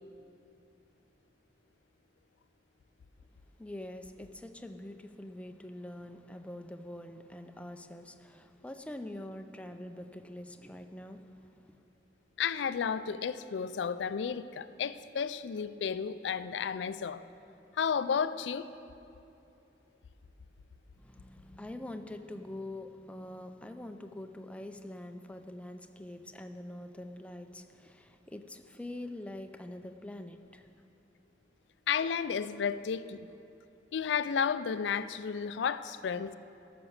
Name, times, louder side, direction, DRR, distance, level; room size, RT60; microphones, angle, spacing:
voice 1, 3.6-11.8 21.0-30.8, left 1 dB, 5° left, 7 dB, 0.5 m, -45 dB
voice 2, 12.4-17.2 17.7-18.7 31.9-33.3 33.9-36.4, left 7 dB, 80° left, 14 dB, 0.4 m, -32 dB
14.0 x 6.0 x 6.5 m, 2.8 s
head